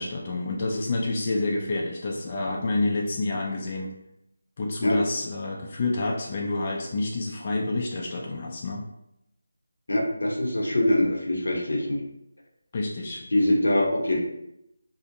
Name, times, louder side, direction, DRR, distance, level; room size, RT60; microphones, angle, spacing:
voice 1, 0.0-3.9 4.6-8.8 12.7-13.3, left 2 dB, 35° left, -1 dB, 0.3 m, -28 dB
voice 2, 9.9-12.0 13.3-14.2, left 1 dB, 80° left, -1 dB, 0.7 m, -23 dB
2.4 x 2.1 x 2.8 m, 0.83 s
figure-of-eight pair, 165°, 0 cm